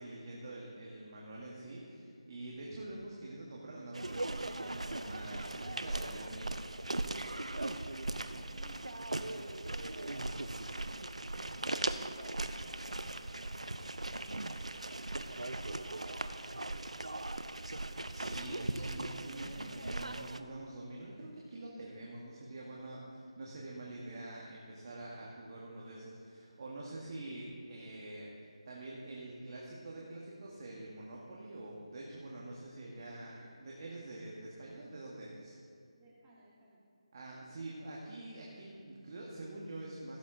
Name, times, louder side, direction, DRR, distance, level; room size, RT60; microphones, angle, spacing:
voice 1, 0.0-6.6 17.9-35.6 37.1-40.2, right 2 dB, 40° right, -4 dB, 1.6 m, -46 dB
sound 1, 3.9-20.4, right 2 dB, 85° right, 0.5 m, -39 dB
voice 2, 8.2-9.5 9.8-13.7 14.2-16.7 36.0-36.8, right 1 dB, 10° right, -8 dB, 2.1 m, -60 dB
16.0 x 7.2 x 3.8 m, 2.3 s
figure-of-eight pair, 160°, 3 cm